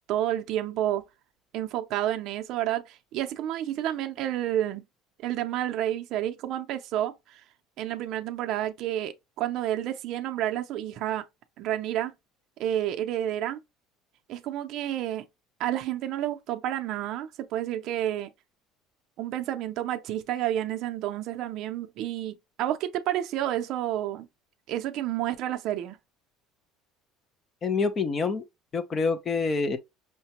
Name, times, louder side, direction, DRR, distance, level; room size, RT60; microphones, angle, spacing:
voice 1, 0.1-1.0 1.5-4.8 5.2-7.4 7.8-11.2 11.6-12.1 12.6-13.6 14.3-15.2 15.6-18.3 19.2-24.3 24.7-26.0, right 12 dB, 50° right, 0.5 m, -30 dB
voice 2, 27.6-28.4 28.7-29.8, left 4 dB, 25° left, 0.5 m, -26 dB
5.7 x 2.2 x 2.8 m
cardioid pair, 165°, 0 cm